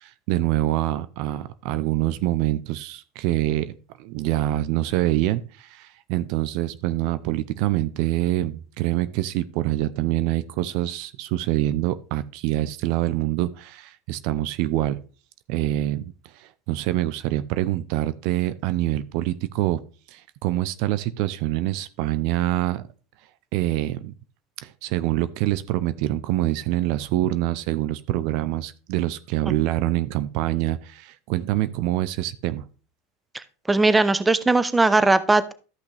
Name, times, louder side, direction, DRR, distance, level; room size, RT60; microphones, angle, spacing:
voice 1, 0.0-3.7 4.0-15.0 15.5-19.8 20.1-22.8 23.5-24.1 24.6-32.6, right 15 dB, 60° right, 14 dB, 0.6 m, -25 dB
voice 2, 33.3-35.5, right 3 dB, 10° right, 14 dB, 0.8 m, -19 dB
13.0 x 5.9 x 3.4 m, 0.36 s
hypercardioid pair, 95°, 0 cm